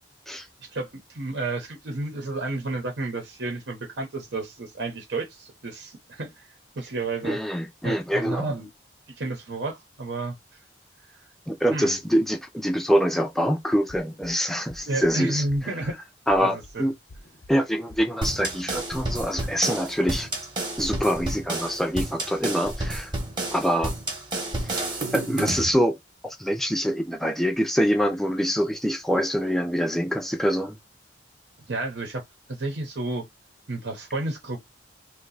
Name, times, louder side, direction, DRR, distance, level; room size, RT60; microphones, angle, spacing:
voice 1, 0.3-7.4 7.8-8.7 9.2-10.6 11.7-12.0 14.9-16.0 16.4-16.9 31.7-33.2 33.7-34.6, right 2 dB, 70° right, 0.8 m, -31 dB
voice 2, 7.2-8.5 11.5-15.7 16.3-16.9 17.5-20.3 20.8-23.1 23.5-24.0 24.6-24.7 25.1-26.0 26.2-30.8, equal, ahead, 0.5 m, -25 dB
sound 1, 13.9-14.3 14.7-15.1 15.5-15.9 16.3-16.7 17.1-17.5 17.9-18.3 18.7-19.1, left 1 dB, 85° left, 0.8 m, -48 dB
sound 2, 18.2-25.7, right 2 dB, 25° right, 0.9 m, -30 dB
2.8 x 2.3 x 3.9 m
head